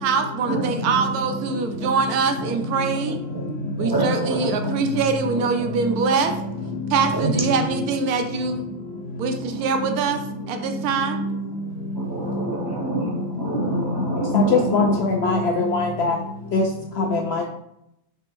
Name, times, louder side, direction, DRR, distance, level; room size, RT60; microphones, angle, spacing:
voice 1, 0.0-3.2 3.8-6.3 6.9-8.6 9.2-10.2 10.5-11.2, right 5 dB, 85° right, 6 dB, 1.1 m, -23 dB
voice 2, 3.8-4.4 4.6-4.7 7.2-7.3 12.0-14.6, right 2 dB, 20° left, -4 dB, 0.6 m, -26 dB
voice 3, 14.3-16.1 16.5-16.6 17.0-17.4, left 3 dB, 65° left, 1 dB, 0.6 m, -21 dB
3.5 x 3.1 x 4.5 m, 0.79 s
omnidirectional pair, 1.5 m